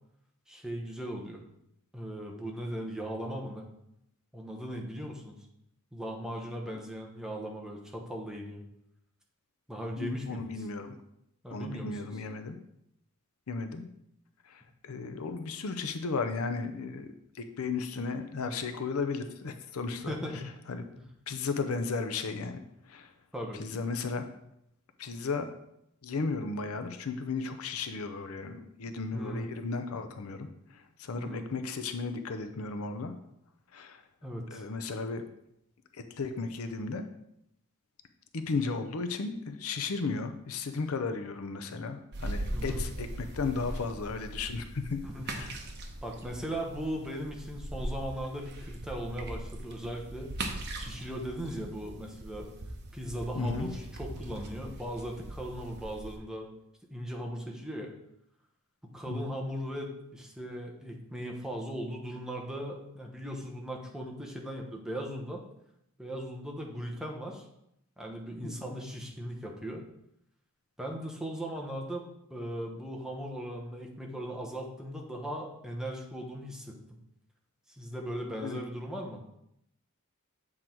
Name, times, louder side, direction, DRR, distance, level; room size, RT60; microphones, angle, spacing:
voice 1, 0.5-1.4 1.9-3.7 4.3-5.4 5.9-8.6 9.7-10.5 11.4-12.0 19.9-20.4 23.3-23.6 29.1-29.5 31.2-31.4 34.2-34.6 42.5-42.9 45.0-45.5 46.0-50.3 50.7-52.5 52.9-56.5 56.9-57.9 58.8-65.4 66.0-67.4 68.0-69.8 70.8-76.8 77.8-79.2, equal, 5° right, 0 dB, 1.0 m, -38 dB
voice 2, 10.0-11.0 11.5-12.6 13.5-13.8 14.4-20.4 20.7-20.9 21.3-22.6 22.9-23.1 23.6-24.3 25.0-25.5 26.0-33.2 33.7-34.0 34.5-35.2 35.9-37.1 38.3-45.0 45.3-45.6 53.4-53.7 59.1-59.3 68.4-68.7 78.4-78.6, left 4 dB, 75° left, 8 dB, 0.6 m, -35 dB
sound 1, 42.1-56.2, right 1 dB, 50° right, 0.9 m, -40 dB
7.7 x 3.8 x 4.5 m, 0.78 s
head